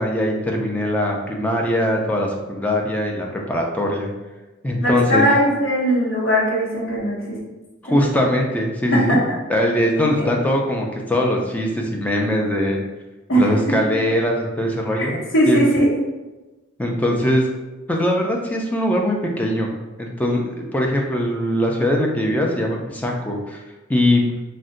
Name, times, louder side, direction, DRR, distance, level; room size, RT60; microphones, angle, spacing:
voice 1, 0.0-4.1 4.6-5.3 7.8-9.2 9.5-12.8 13.3-15.2 15.5-15.6 16.8-17.4 17.9-19.7 20.0-23.6 23.9-24.2, left 1 dB, 10° left, 0 dB, 0.3 m, -21 dB
voice 2, 4.8-7.4 7.8-8.0 8.9-9.2 13.3-13.5 15.0-15.1 15.3-15.9, equal, 65° left, -5 dB, 0.8 m, -19 dB
2.5 x 2.1 x 3.7 m, 1.2 s
head